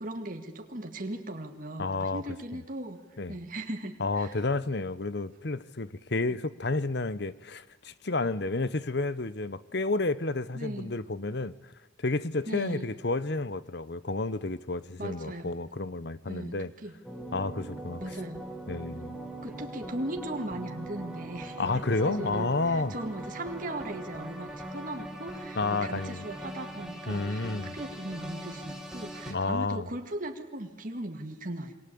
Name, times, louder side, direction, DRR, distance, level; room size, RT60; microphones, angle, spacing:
voice 1, 0.0-3.0 3.3-4.4 10.5-10.9 12.5-12.9 15.0-15.5 16.3-16.9 18.0-18.4 19.4-21.7 22.0-31.7, right 1 dB, 40° right, 2.1 m, -38 dB
voice 2, 1.8-2.2 3.2-3.4 4.0-11.5 12.0-16.7 17.3-18.0 18.7-19.2 21.6-22.9 25.6-26.2 27.1-27.8 29.3-29.9, left 3 dB, 55° left, 0.9 m, -31 dB
sound 1, 17.0-29.3, right 1 dB, 5° right, 2.5 m, -41 dB
28.0 x 23.5 x 8.6 m
head